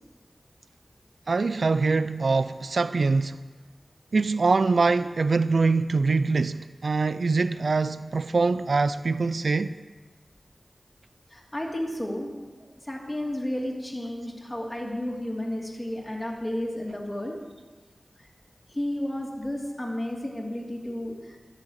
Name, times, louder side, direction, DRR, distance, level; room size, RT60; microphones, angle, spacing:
voice 1, 1.3-3.4 4.1-9.8, right 4 dB, 80° right, 0.4 m, -24 dB
voice 2, 11.3-17.3 18.2-18.3 18.7-21.4, left 1 dB, 20° left, 2.7 m, -32 dB
12.5 x 8.8 x 6.5 m
wide cardioid pair, 55°, 0 cm